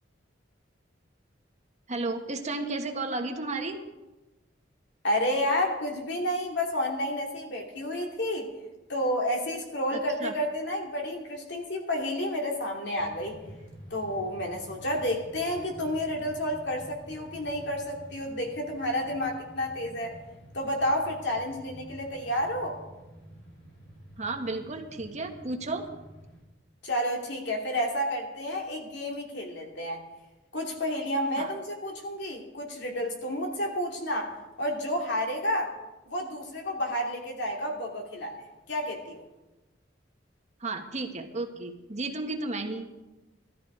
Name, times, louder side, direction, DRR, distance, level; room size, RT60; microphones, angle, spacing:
voice 1, 1.9-3.8 9.9-10.3 24.2-25.8 31.4-31.5 40.6-42.9, right 2 dB, 40° right, 4 dB, 1.4 m, -33 dB
voice 2, 5.0-8.5 8.9-13.4 13.9-20.2 20.5-22.8 26.8-30.0 30.5-35.7 36.1-38.4 38.7-39.2, left 1 dB, 65° left, 1 dB, 2.8 m, -30 dB
sound 1, 13.0-26.4, right 1 dB, 80° left, 5.0 m, -49 dB
16.5 x 13.0 x 5.0 m, 1.1 s
head